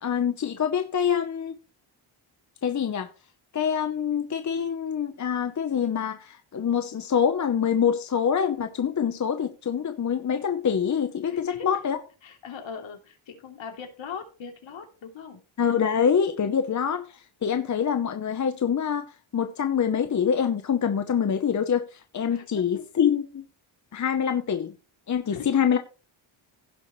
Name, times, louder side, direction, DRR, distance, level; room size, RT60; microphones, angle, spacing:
voice 1, 0.0-1.5 2.6-3.1 3.5-12.0 15.6-19.1 19.3-23.4 23.9-24.7 25.1-25.8, left 7 dB, 35° left, 0.9 m, -25 dB
voice 2, 11.3-11.8 12.2-15.4 16.4-16.5 22.3-22.8 25.3-25.6, left 6 dB, 70° left, 3.1 m, -40 dB
16.5 x 6.3 x 3.2 m
wide cardioid pair, 145°, 48 cm